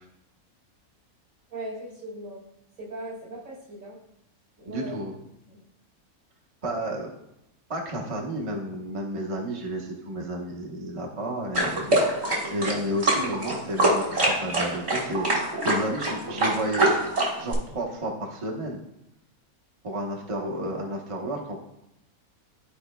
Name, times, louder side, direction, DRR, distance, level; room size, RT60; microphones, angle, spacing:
voice 1, 1.5-2.4 2.8-4.0 4.6-5.0 5.5-5.6, right 1 dB, 65° right, -5 dB, 2.6 m, -38 dB
voice 2, 4.7-5.1 6.6-7.1 7.7-16.9 17.4-18.8 19.8-21.6, right 1 dB, 25° right, -1 dB, 0.9 m, -32 dB
sound 1, 11.5-17.5, right 1 dB, 45° right, 2.0 m, -24 dB
13.0 x 4.6 x 2.2 m, 0.83 s
omnidirectional pair, 1.6 m